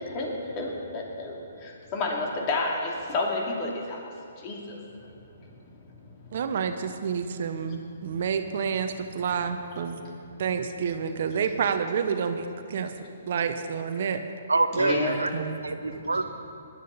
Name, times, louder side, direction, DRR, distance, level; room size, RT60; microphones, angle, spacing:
voice 1, 0.6-1.3 1.9-4.0 4.4-4.8 14.7-15.2, left 2 dB, 35° left, -1 dB, 2.8 m, -29 dB
voice 2, 6.3-10.0 10.4-12.9 13.3-14.2 15.3-15.6, right 6 dB, 55° right, 8 dB, 0.9 m, -29 dB
voice 3, 14.5-15.3 15.6-16.2, right 3 dB, 85° right, 9 dB, 0.8 m, -25 dB
19.5 x 11.5 x 4.1 m, 2.6 s
figure-of-eight pair, 130°, 0 cm